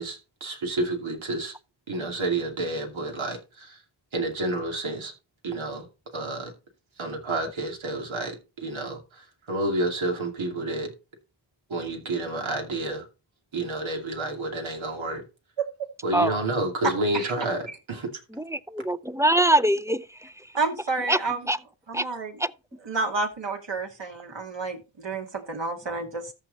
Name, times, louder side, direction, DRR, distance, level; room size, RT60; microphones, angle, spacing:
voice 1, 0.0-1.5 1.9-3.8 4.1-5.1 5.4-5.8 6.1-6.5 7.0-10.9 11.7-13.1 13.5-15.2 16.0-18.2, right 2 dB, 90° right, 2.7 m, -30 dB
voice 2, 16.8-17.3 20.5-21.4 21.9-22.4 22.9-26.3, right 3 dB, 65° right, 2.5 m, -30 dB
voice 3, 18.4-20.5 21.1-21.2 21.4-21.6 21.9-22.1 22.4-22.5, right 1 dB, 5° right, 0.5 m, -23 dB
13.5 x 4.8 x 4.1 m
cardioid pair, 55°, 46 cm